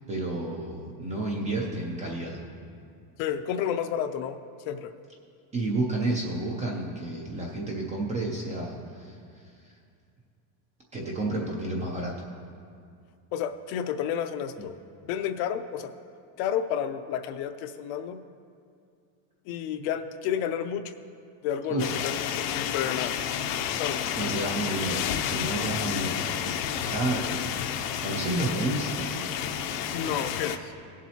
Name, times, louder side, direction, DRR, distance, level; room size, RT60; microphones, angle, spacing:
voice 1, 0.1-2.4 5.5-9.7 10.9-12.2 21.7-22.0 24.2-29.1, right 2 dB, 15° right, -2 dB, 0.3 m, -31 dB
voice 2, 3.2-4.4 4.7-4.9 13.3-14.7 15.0-15.9 16.4-18.2 19.5-20.9 21.4-23.1 23.8-24.1 29.9-30.7, left 9 dB, 50° left, 9 dB, 0.5 m, -31 dB
sound 1, 21.8-30.6, left 9 dB, 80° left, 0.8 m, -30 dB
17.0 x 7.4 x 2.8 m, 2.3 s
cardioid pair, 165°, 47 cm